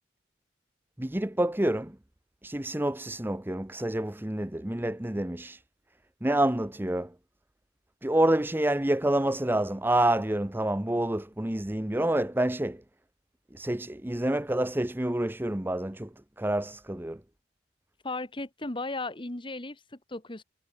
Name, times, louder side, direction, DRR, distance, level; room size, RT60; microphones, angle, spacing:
voice 1, 1.0-2.0 2.4-5.6 6.2-7.1 8.0-12.8 13.5-16.1 16.4-17.2, right 1 dB, 10° right, 0.7 m, -28 dB
voice 2, 18.0-20.4, left 2 dB, 25° left, 1.4 m, -36 dB
head